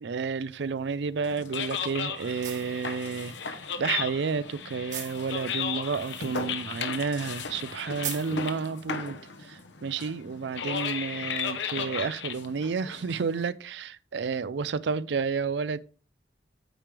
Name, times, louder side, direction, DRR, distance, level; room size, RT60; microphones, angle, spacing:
voice 1, 0.0-15.8, right 5 dB, 70° right, 0.4 m, -31 dB
sound 1, 0.6-9.2, right 7 dB, 40° right, 1.6 m, -45 dB
sound 2, 1.2-13.5, left 6 dB, 75° left, 0.9 m, -35 dB
8.8 x 5.0 x 3.4 m
head